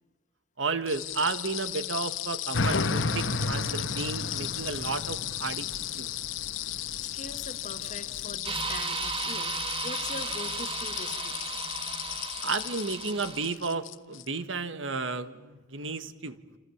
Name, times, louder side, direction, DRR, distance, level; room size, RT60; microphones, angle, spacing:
voice 1, 0.6-6.1 12.4-16.4, right 4 dB, 80° right, 11 dB, 1.6 m, -33 dB
sound 1, 0.9-14.3, left 15 dB, 90° left, 0.8 m, -36 dB
sound 2, 2.5-8.4, left 2 dB, 70° left, 1.2 m, -33 dB
voice 2, 7.0-11.4, left 3 dB, 40° left, 9 dB, 1.7 m, -42 dB
Amin high drone, 8.4-13.5, right 5 dB, 30° right, 1.5 m, -35 dB
27.5 x 27.5 x 7.3 m, 1.2 s
head